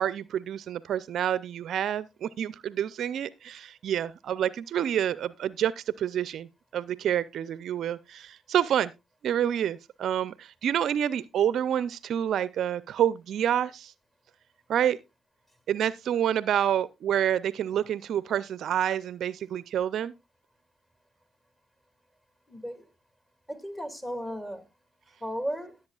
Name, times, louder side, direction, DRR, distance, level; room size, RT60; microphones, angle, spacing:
voice 1, 0.0-6.5 6.7-8.9 9.2-13.9 14.7-15.0 15.7-20.1, right 10 dB, 60° right, 0.5 m, -28 dB
voice 2, 22.5-22.8 23.5-24.6 25.2-25.8, equal, 15° left, 2.3 m, -35 dB
16.5 x 7.7 x 2.4 m
hypercardioid pair, 55°, 0 cm